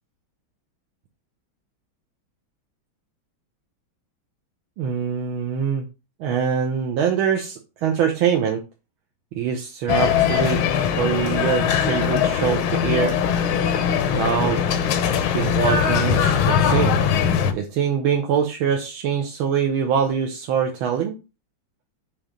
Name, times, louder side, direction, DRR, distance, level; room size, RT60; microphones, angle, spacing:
voice 1, 4.8-5.9 6.2-8.6 9.3-10.6 11.0-13.2 14.1-14.6 15.3-17.0 17.5-21.1, right 7 dB, 85° right, 1 dB, 1.7 m, -23 dB
sound 1, 9.9-17.5, left 8 dB, 90° left, 1.6 m, -21 dB
6.9 x 3.0 x 5.1 m, 0.29 s
omnidirectional pair, 2.2 m